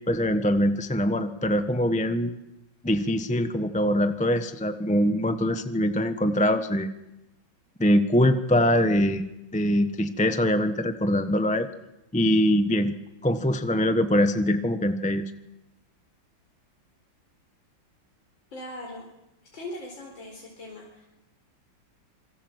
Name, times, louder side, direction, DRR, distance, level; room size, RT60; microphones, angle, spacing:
voice 1, 0.1-2.4 2.8-6.9 7.8-9.2 9.5-11.7 12.1-12.9 13.2-15.2, equal, 5° left, 9 dB, 1.0 m, -23 dB
voice 2, 18.5-19.1 19.5-21.1, left 1 dB, 75° left, -1 dB, 5.3 m, -40 dB
27.0 x 24.5 x 8.1 m, 0.93 s
omnidirectional pair, 2.1 m